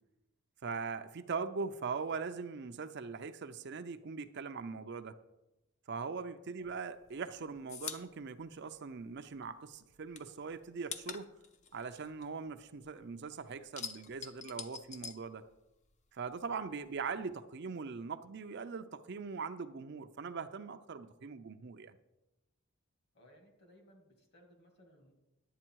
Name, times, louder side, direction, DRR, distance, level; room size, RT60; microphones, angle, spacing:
voice 1, 0.6-5.1 5.9-11.3 11.7-15.4 16.1-22.0, right 5 dB, 50° right, 9 dB, 0.5 m, -41 dB
sound 1, 6.7-9.5 9.7-13.0 13.3-16.0 16.2-17.3, left 6 dB, 30° left, 0.5 m, -46 dB
voice 2, 23.1-25.1, equal, 50° left, 3 dB, 2.2 m, -62 dB
11.0 x 8.1 x 4.6 m, 0.97 s
head